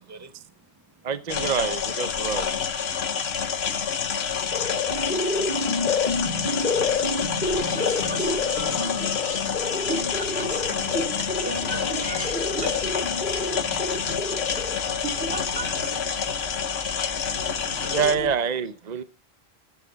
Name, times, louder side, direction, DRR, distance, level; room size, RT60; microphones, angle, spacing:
voice 1, 0.0-1.1 11.4-14.2 15.4-15.5 15.7-16.0 17.9-19.0, right 4 dB, 15° right, 1.0 m, -47 dB
voice 2, 1.0-2.5 17.4-17.5 17.9-19.0, right 6 dB, 45° right, 0.9 m, -26 dB
sound 1, 1.3-18.2, left 7 dB, 75° left, 1.2 m, -28 dB
sound 2, 4.4-14.9, left 3 dB, 45° left, 1.9 m, -29 dB
voice 3, 7.6-13.2 14.1-16.4 17.2-18.3, right 2 dB, 90° right, 3.3 m, -36 dB
sound 3, 11.6-18.4, left 2 dB, 20° left, 1.2 m, -43 dB
21.0 x 7.5 x 3.9 m
omnidirectional pair, 1.1 m